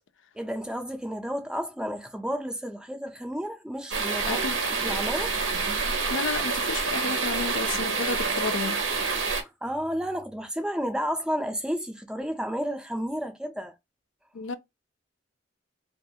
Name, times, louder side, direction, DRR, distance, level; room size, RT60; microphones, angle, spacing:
voice 1, 0.3-4.4 4.8-5.4 9.6-13.7, equal, 5° right, 0.3 m, -32 dB
sound 1, 3.9-9.4, right 4 dB, 90° right, 0.7 m, -27 dB
voice 2, 4.3-4.6 6.1-8.8 14.3-14.6, left 5 dB, 90° left, 0.4 m, -31 dB
2.3 x 2.3 x 2.7 m
head